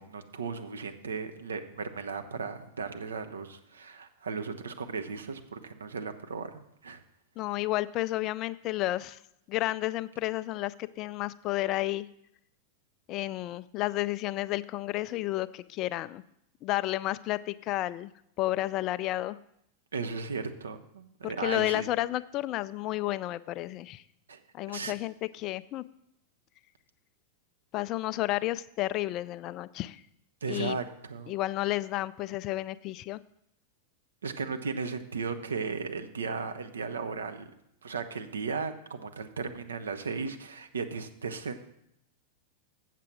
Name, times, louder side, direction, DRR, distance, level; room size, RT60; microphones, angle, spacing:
voice 1, 0.0-7.0 19.9-21.9 24.3-24.4 24.7-24.9 30.4-31.3 34.2-37.5 37.8-41.6, right 5 dB, 70° right, 7 dB, 0.8 m, -36 dB
voice 2, 7.4-9.2 9.5-12.1 13.1-16.2 16.6-18.1 18.4-19.4 21.2-24.0 24.5-25.8 27.7-30.0 30.5-30.8 31.3-33.2, left 17 dB, 35° left, 16 dB, 0.3 m, -31 dB
7.5 x 7.5 x 6.0 m, 0.78 s
figure-of-eight pair, 90°, 0 cm